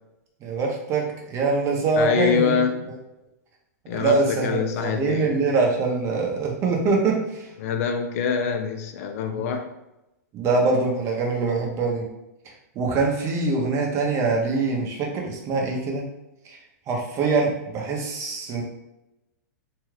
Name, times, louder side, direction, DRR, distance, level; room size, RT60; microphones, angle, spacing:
voice 1, 0.4-2.6 3.9-7.4 9.3-9.5 10.3-12.1 12.8-16.0 16.9-18.6, right 3 dB, 30° right, 0 dB, 0.7 m, -24 dB
voice 2, 2.0-2.9 3.9-5.3 7.6-9.7, left 6 dB, 55° left, 5 dB, 0.4 m, -25 dB
2.7 x 2.3 x 3.1 m, 0.92 s
hypercardioid pair, 135°, 9 cm